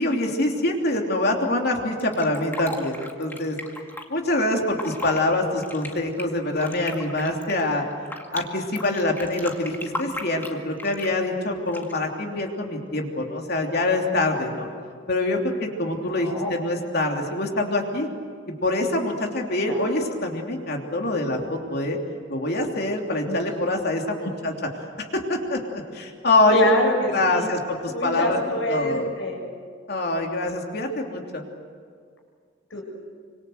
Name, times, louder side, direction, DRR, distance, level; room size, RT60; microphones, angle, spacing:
voice 1, 0.0-3.6 4.1-7.8 8.3-14.7 15.1-18.1 18.6-22.0 22.3-24.5 25.0-26.6 27.0-28.4 28.7-29.1 29.9-31.4, left 2 dB, 50° left, 2 dB, 3.1 m, -25 dB
Fill (with liquid), 2.0-4.0 4.6-5.2 5.6-8.4 8.8-11.2 11.7-12.1, left 1 dB, 10° left, 2.0 m, -36 dB
voice 2, 16.0-16.5 19.7-19.8 23.3-23.5 26.5-27.5 27.9-29.4 32.7-32.8, equal, 70° left, 1 dB, 6.9 m, -25 dB
26.0 x 25.5 x 8.0 m, 2.1 s
head